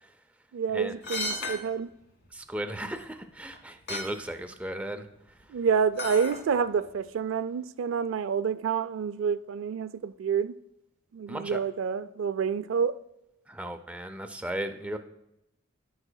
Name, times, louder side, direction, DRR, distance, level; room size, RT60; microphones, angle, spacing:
voice 1, 0.5-1.9 5.5-10.5 11.1-13.0, right 6 dB, 70° right, 0.3 m, -28 dB
sound 1, 1.0-1.6 2.9-3.0 3.5-3.6 3.9-4.1 6.0-6.4 6.9-7.0, left 2 dB, 55° left, 1.6 m, -33 dB
voice 2, 2.3-5.1 11.3-11.6 13.5-15.0, right 1 dB, 5° right, 0.4 m, -36 dB
14.5 x 4.9 x 2.2 m
head